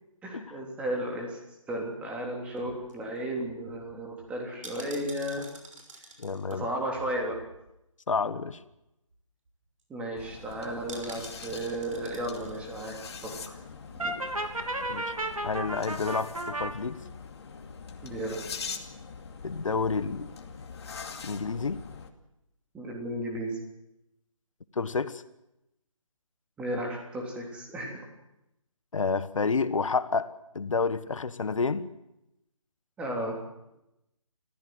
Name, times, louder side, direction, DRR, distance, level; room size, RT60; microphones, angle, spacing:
voice 1, 0.2-1.4 1.7-5.4 6.5-7.4 9.9-13.0 13.2-13.6 14.0-14.1 18.0-18.4 22.7-23.6 26.6-28.0 33.0-33.4, right 1 dB, 5° right, 0 dB, 3.4 m, -34 dB
sound 1, 2.5-7.8 8.1-8.2 8.5-8.7 9.1-9.2 9.5-9.8 10.9-12.6 13.0-13.1, right 2 dB, 65° right, 6.0 m, -48 dB
voice 2, 6.2-6.7 8.1-8.6 14.9-15.1 15.4-17.0 19.4-20.3 21.2-21.8 24.7-25.2 28.9-31.9, left 4 dB, 70° left, 14 dB, 1.4 m, -29 dB
sound 2, 10.2-22.1, left 5 dB, 50° left, 2.4 m, -43 dB
Brass instrument, 14.0-16.7, right 2 dB, 90° right, 3.1 m, -33 dB
26.0 x 15.5 x 7.9 m, 0.89 s
figure-of-eight pair, 155°, 17 cm